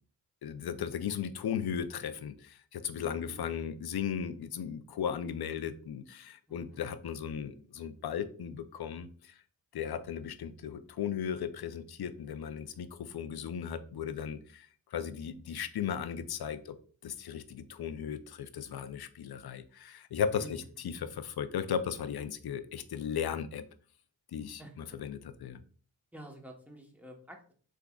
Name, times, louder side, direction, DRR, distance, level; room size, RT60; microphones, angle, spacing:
voice 1, 0.4-9.3 9.7-16.8 17.0-23.6 24.3-25.6, left 8 dB, 55° left, 11 dB, 0.5 m, -36 dB
voice 2, 6.5-6.8 12.5-12.7 20.4-20.5 24.6-24.7 26.1-27.5, right 1 dB, 5° right, 1 dB, 1.0 m, -50 dB
3.6 x 3.5 x 2.3 m, 0.42 s
cardioid pair, 45°, 46 cm